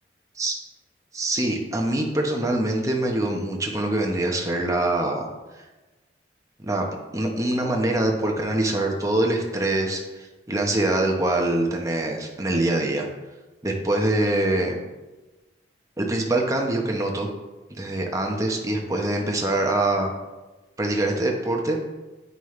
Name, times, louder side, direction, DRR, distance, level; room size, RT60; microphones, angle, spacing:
voice 1, 1.1-5.3 6.6-6.8 7.1-13.1 13.6-14.8 16.0-17.3 17.8-20.1 20.8-21.8, right 1 dB, 20° right, 1 dB, 1.0 m, -24 dB
9.5 x 5.4 x 3.2 m, 1.2 s
head